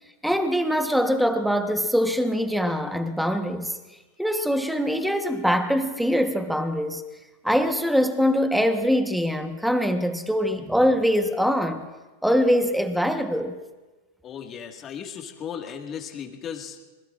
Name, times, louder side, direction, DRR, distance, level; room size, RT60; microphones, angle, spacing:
voice 1, 0.2-3.7 4.2-7.0 7.4-11.9 12.2-13.6, equal, ahead, 1.2 m, -23 dB
voice 2, 14.2-16.8, left 8 dB, 30° left, 1.9 m, -36 dB
26.0 x 21.0 x 2.5 m
supercardioid pair, 130°, 0 cm